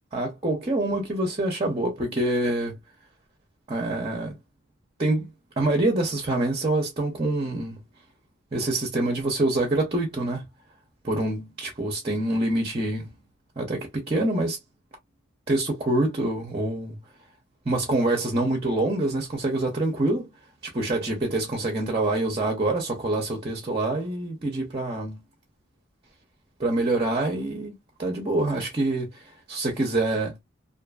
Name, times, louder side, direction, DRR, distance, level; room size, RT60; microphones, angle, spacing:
voice 1, 0.1-2.8 3.7-4.4 5.0-5.3 5.6-7.8 8.5-10.4 11.0-13.1 13.6-14.6 15.5-17.0 17.6-20.3 20.6-25.2 26.6-30.4, right 2 dB, 30° right, 0.6 m, -26 dB
2.5 x 2.5 x 2.3 m
head